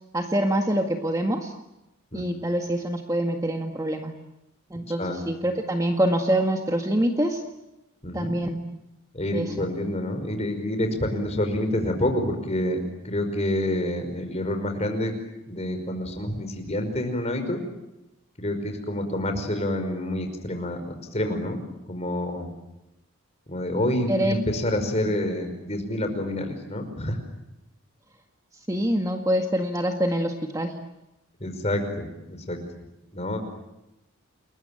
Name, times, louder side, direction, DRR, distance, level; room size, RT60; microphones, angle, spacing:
voice 1, 0.1-1.5 2.1-4.1 4.7-7.4 8.1-8.6 9.3-9.7 24.1-24.4 25.0-25.1 28.7-30.7, right 1 dB, 15° right, 4 dB, 1.9 m, -25 dB
voice 2, 4.7-5.2 8.0-8.3 9.1-12.8 13.0-15.1 15.5-17.6 18.4-22.5 23.5-27.2 31.4-32.6 33.1-33.4, left 1 dB, 30° left, 6 dB, 5.3 m, -28 dB
29.5 x 22.0 x 9.1 m, 0.91 s
head